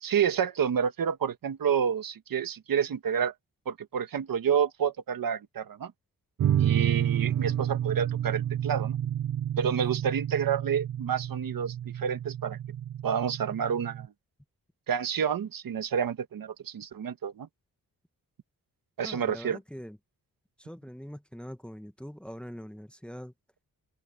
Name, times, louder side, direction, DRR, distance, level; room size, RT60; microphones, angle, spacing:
voice 1, 0.0-3.3 3.6-5.9 6.6-9.0 9.6-12.6 13.0-14.1 14.9-17.5 19.0-19.6, right 8 dB, 85° right, 1.6 m, -29 dB
sound 1, 6.4-14.1, right 10 dB, 55° right, 0.5 m, -30 dB
voice 2, 7.2-7.6 19.0-20.0 20.6-23.3, equal, 5° left, 1.1 m, -43 dB
open air
wide cardioid pair, 135°, 33 cm